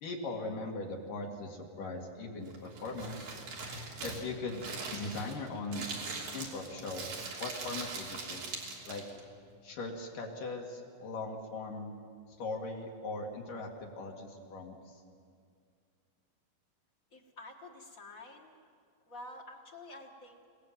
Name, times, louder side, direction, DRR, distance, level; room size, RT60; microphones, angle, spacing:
voice 1, 0.0-3.3 4.0-4.7 4.9-5.9 6.3-7.1 7.4-8.6 8.9-9.0 9.6-11.9 12.4-14.8, left 3 dB, 75° left, 0 dB, 4.0 m, -39 dB
Crumpling crinkling, 2.4-9.2, right 3 dB, 85° right, 4.7 m, -41 dB
voice 2, 17.1-18.6 19.1-20.5, left 2 dB, 35° left, 3 dB, 1.4 m, -49 dB
27.5 x 18.0 x 7.6 m, 2.2 s
omnidirectional pair, 3.8 m